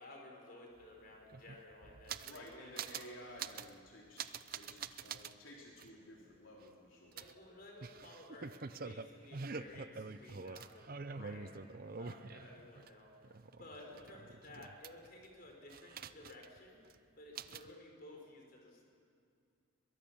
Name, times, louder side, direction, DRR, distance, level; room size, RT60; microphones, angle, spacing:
voice 1, 0.0-3.2 7.1-8.6 8.8-11.5 12.0-13.3 13.6-16.8 17.2-18.8, left 1 dB, 45° left, 1 dB, 4.7 m, -55 dB
sound 1, 0.8-0.9 1.1-2.5 2.8-3.1 3.4-3.7 4.2-5.3 5.8-5.9 7.2-12.9 13.2-15.3 15.7-16.6 16.9-17.0 17.4-17.7, right 5 dB, 45° right, 0.6 m, -46 dB
voice 2, 2.2-7.2 11.4-11.7 13.8-14.0 17.3-17.6, left 1 dB, 70° left, -3 dB, 3.5 m, -55 dB
23.0 x 22.0 x 7.2 m, 2.4 s
head